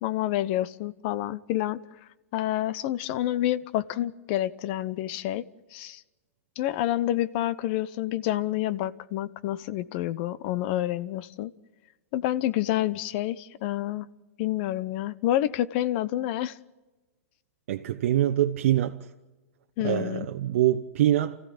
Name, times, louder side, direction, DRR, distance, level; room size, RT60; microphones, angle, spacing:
voice 1, 0.0-1.8 2.3-5.4 5.7-6.0 6.6-11.5 12.1-14.1 14.4-16.6 19.8-20.3, left 13 dB, 50° left, 0.9 m, -28 dB
voice 2, 17.7-19.0 19.8-21.4, right 12 dB, 60° right, 0.9 m, -24 dB
29.0 x 15.0 x 8.6 m
hypercardioid pair, 110°, 8 cm